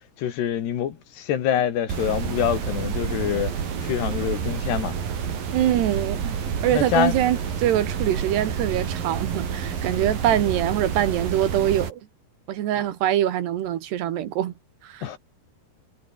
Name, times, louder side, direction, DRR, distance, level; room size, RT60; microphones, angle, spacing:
voice 1, 0.2-5.0 6.7-7.2 12.7-12.9 15.0-15.2, left 10 dB, 70° left, 4.2 m, -26 dB
sound 1, 1.9-11.9, right 7 dB, 55° right, 4.9 m, -29 dB
voice 2, 5.5-6.4 6.6-12.0 12.5-14.5 14.8-15.1, right 11 dB, 70° right, 3.6 m, -24 dB
omnidirectional pair, 5.2 m